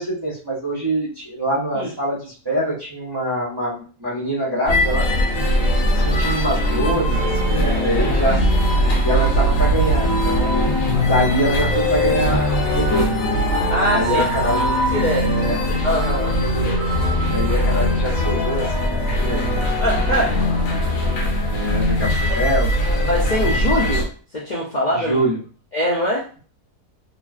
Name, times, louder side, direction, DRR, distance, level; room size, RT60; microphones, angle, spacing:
voice 1, 0.0-5.1 5.9-8.4 9.0-13.2 13.9-14.7 15.2-15.6 17.3-19.6 20.0-20.3 21.4-22.7 24.9-25.4, right 1 dB, 25° right, -6 dB, 0.6 m, -24 dB
sound 1, 4.7-24.0, equal, 65° left, 1.0 m, -20 dB
voice 2, 13.7-14.2 14.6-15.3 15.8-16.4 19.8-20.3 22.3-22.4 23.1-24.1 24.3-25.2 25.7-26.4, equal, 80° left, -5 dB, 0.4 m, -22 dB
3.0 x 2.6 x 2.4 m, 0.39 s
omnidirectional pair, 1.7 m